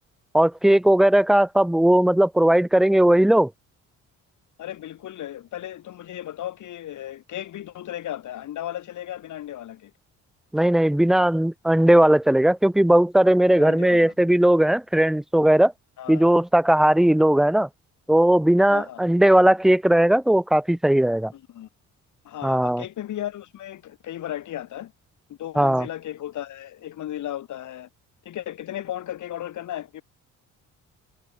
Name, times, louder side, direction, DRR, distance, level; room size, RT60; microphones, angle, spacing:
voice 1, 0.3-3.5 10.5-15.7 16.1-17.7 18.1-21.3 22.4-22.8 25.6-25.9, right 1 dB, ahead, 0.4 m, -18 dB
voice 2, 4.6-9.9 13.5-14.1 16.0-16.3 18.7-19.0 21.3-21.7 22.2-24.9 25.3-27.9 28.3-30.0, left 12 dB, 75° left, 5.3 m, -35 dB
cardioid pair, 90°, 30 cm